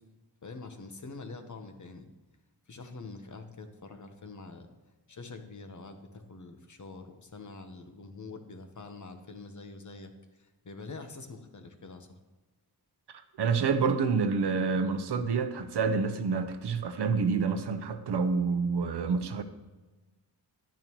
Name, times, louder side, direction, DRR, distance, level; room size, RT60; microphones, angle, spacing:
voice 1, 0.4-2.1 2.7-4.7 5.1-10.1 10.6-12.2, left 3 dB, 45° left, 6 dB, 1.1 m, -45 dB
voice 2, 13.4-19.4, right 5 dB, 75° right, 9 dB, 0.9 m, -28 dB
10.5 x 10.5 x 3.0 m, 1.2 s
wide cardioid pair, 110°, 41 cm